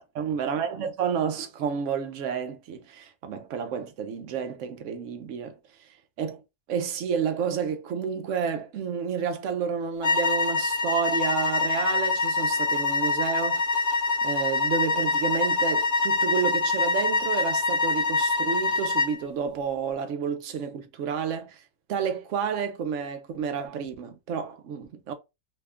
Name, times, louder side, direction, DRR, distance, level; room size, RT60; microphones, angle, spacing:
voice 1, 0.0-5.6 6.2-6.4 6.7-13.6 14.2-21.6 21.9-25.1, right 7 dB, 65° right, 0.9 m, -30 dB
sound 1, 10.0-19.2, left 3 dB, 50° left, 1.1 m, -25 dB
2.8 x 2.2 x 3.5 m
omnidirectional pair, 1.5 m